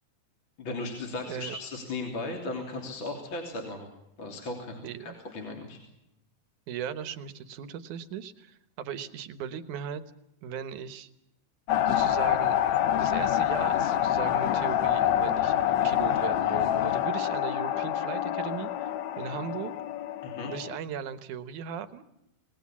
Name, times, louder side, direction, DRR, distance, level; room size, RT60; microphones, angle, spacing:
voice 1, 0.6-3.9 4.2-5.8 20.2-20.5, left 2 dB, 40° left, 2 dB, 3.9 m, -36 dB
voice 2, 4.8-5.1 6.7-10.0 10.4-11.1 11.9-12.6 12.9-15.5 15.8-19.7 20.5-22.0, right 8 dB, 80° right, 13 dB, 2.7 m, -38 dB
sound 1, 11.7-20.8, left 11 dB, 70° left, 2.2 m, -26 dB
28.0 x 19.5 x 7.3 m, 0.84 s
omnidirectional pair, 3.4 m